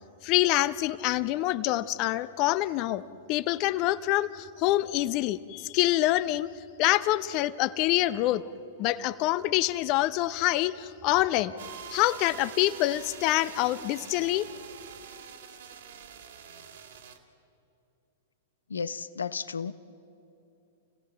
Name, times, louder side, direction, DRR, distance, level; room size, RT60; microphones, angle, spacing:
voice 1, 0.2-6.5 6.8-8.4 8.8-14.5, left 16 dB, 40° left, 0.8 m, -26 dB
sound 1, 11.6-17.2, right 7 dB, 65° right, 2.3 m, -45 dB
voice 2, 18.7-19.7, left 6 dB, 75° left, 0.8 m, -33 dB
30.0 x 17.0 x 7.7 m
figure-of-eight pair, 100°, 0 cm